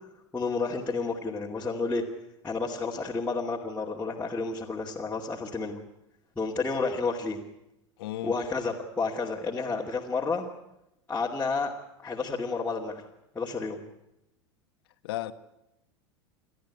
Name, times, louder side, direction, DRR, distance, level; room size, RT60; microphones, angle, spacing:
voice 1, 0.3-2.0 2.4-5.8 6.4-7.4 8.2-10.4 11.1-11.7 12.0-13.1 13.3-13.8, left 4 dB, 10° left, 2.5 m, -30 dB
voice 2, 8.0-8.4 15.0-15.3, left 15 dB, 55° left, 1.3 m, -34 dB
28.5 x 13.5 x 9.7 m
figure-of-eight pair, 85°, 15 cm